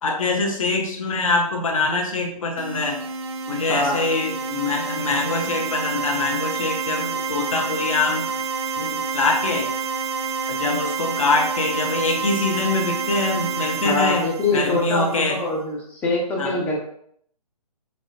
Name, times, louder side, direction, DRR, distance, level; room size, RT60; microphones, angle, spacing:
voice 1, 0.0-3.1 3.5-8.3 8.8-9.7 10.5-14.2 14.5-15.4 16.4-16.5, left 3 dB, 55° left, 2 dB, 1.1 m, -24 dB
sound 1, 2.6-15.3, right 5 dB, 40° right, 0.5 m, -28 dB
voice 2, 3.7-4.0 13.8-16.8, left 2 dB, 10° left, -1 dB, 0.6 m, -24 dB
5.9 x 3.2 x 2.6 m, 0.66 s
figure-of-eight pair, 140°, 21 cm